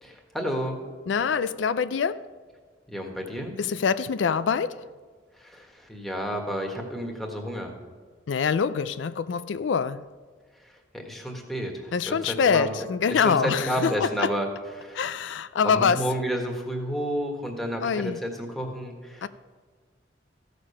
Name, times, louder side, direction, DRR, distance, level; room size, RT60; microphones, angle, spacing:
voice 1, 0.0-0.8 2.9-3.6 5.4-7.7 10.9-12.7 13.1-14.5 14.7-15.0 15.6-19.3, equal, ahead, 1.5 m, -31 dB
voice 2, 1.1-2.2 3.6-4.8 8.3-10.1 11.9-14.3 14.9-16.0 17.8-18.2 19.2-19.3, left 6 dB, 90° left, 0.4 m, -25 dB
15.0 x 6.7 x 5.6 m
head